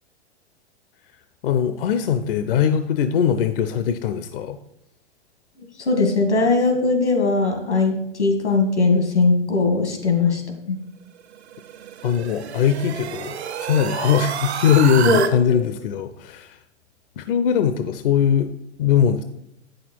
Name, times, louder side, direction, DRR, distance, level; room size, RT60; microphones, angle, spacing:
voice 1, 1.4-4.6 12.0-16.6 17.2-18.5 18.8-19.2, left 8 dB, 55° left, 10 dB, 0.6 m, -20 dB
voice 2, 5.8-10.4 10.7-10.8 15.0-15.6, left 3 dB, 85° left, 5 dB, 2.0 m, -20 dB
sound 1, 11.3-15.3, right 9 dB, 70° right, 0.9 m, -29 dB
8.7 x 6.5 x 4.5 m, 0.77 s
figure-of-eight pair, 105°, 34 cm